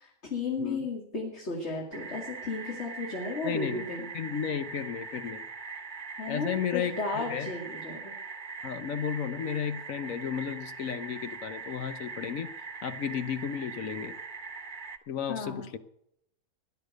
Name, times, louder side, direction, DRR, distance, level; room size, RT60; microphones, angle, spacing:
voice 1, 0.0-4.1 6.2-8.1 15.3-15.7, left 3 dB, 45° left, -1 dB, 2.5 m, -34 dB
sound 1, 1.9-15.0, right 4 dB, 35° right, 1.1 m, -41 dB
voice 2, 3.4-3.8 4.1-5.4 6.3-7.5 8.6-12.5 12.8-14.1 15.1-15.8, left 8 dB, 65° left, 11 dB, 1.2 m, -33 dB
15.5 x 10.5 x 6.5 m, 0.75 s
omnidirectional pair, 1.6 m